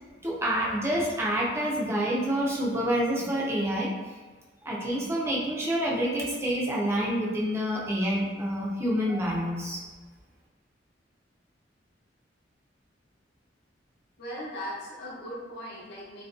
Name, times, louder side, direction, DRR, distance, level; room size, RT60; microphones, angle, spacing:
voice 1, 0.2-3.9 4.7-9.8, equal, 15° right, -4 dB, 0.4 m, -27 dB
voice 2, 14.2-16.2, equal, 65° left, -6 dB, 0.7 m, -38 dB
2.5 x 2.1 x 2.3 m, 1.3 s
head